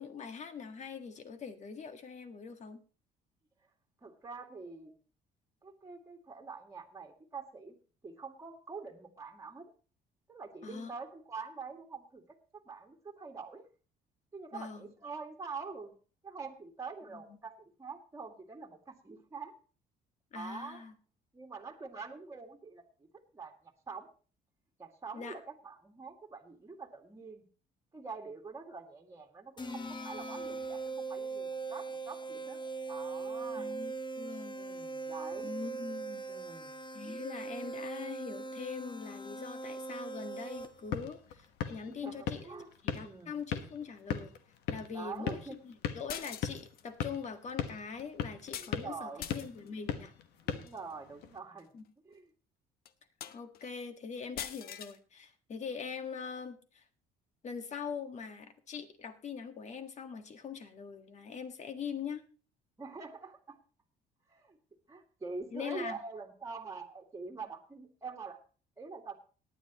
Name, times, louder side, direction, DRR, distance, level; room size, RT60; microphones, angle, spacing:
voice 1, 0.0-2.8 10.6-10.9 14.5-14.9 17.1-17.2 20.3-20.9 25.1-25.4 33.5-34.6 35.4-36.2 36.9-42.5 42.8-44.3 44.7-45.4 45.6-50.1 51.7-51.8 53.3-56.8 57.4-62.2 65.5-66.0, left 6 dB, 45° left, 8 dB, 1.6 m, -42 dB
voice 2, 4.0-4.9 5.6-7.8 8.0-9.7 10.3-12.4 12.7-13.7 14.3-15.9 16.2-19.5 20.3-20.8 21.3-22.8 23.3-24.1 24.8-27.4 27.9-32.6 32.9-33.7 34.5-35.5 36.3-36.7 37.0-37.2 41.9-42.7 43.0-43.4 44.9-45.6 48.6-49.3 50.4-51.7 52.0-52.3 62.8-63.6 64.3-64.6 64.9-68.4 68.8-69.2, right 4 dB, 20° right, 1 dB, 2.0 m, -45 dB
sound 1, 29.6-41.0, right 3 dB, 25° left, 1.1 m, -40 dB
sound 2, 40.6-51.4, left 8 dB, 80° left, 1.4 m, -40 dB
sound 3, 46.1-46.9 48.5-48.8 49.2-49.7 50.5-50.8 51.6-51.7 52.1-52.2 52.9-53.0 53.2-53.6 54.4-55.0, left 9 dB, 65° left, 0.9 m, -43 dB
18.5 x 9.8 x 3.0 m, 0.37 s
cardioid pair, 110°, 17 cm